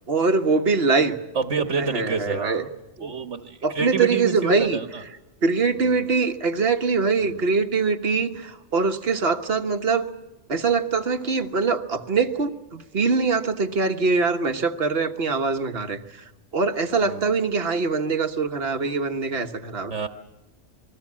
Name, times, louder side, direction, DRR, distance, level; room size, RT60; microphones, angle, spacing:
voice 1, 0.1-1.2 1.8-2.7 3.0-3.1 3.6-4.8 5.4-10.1 10.5-16.2 16.5-19.9, right 4 dB, 55° right, 8 dB, 1.5 m, -23 dB
voice 2, 1.3-2.7 3.0-5.0 5.8-6.0 7.2-7.4 17.0-17.3 19.9-20.1, right 5 dB, 75° right, 6 dB, 1.6 m, -28 dB
28.0 x 20.5 x 7.5 m, 1.0 s
omnidirectional pair, 1.2 m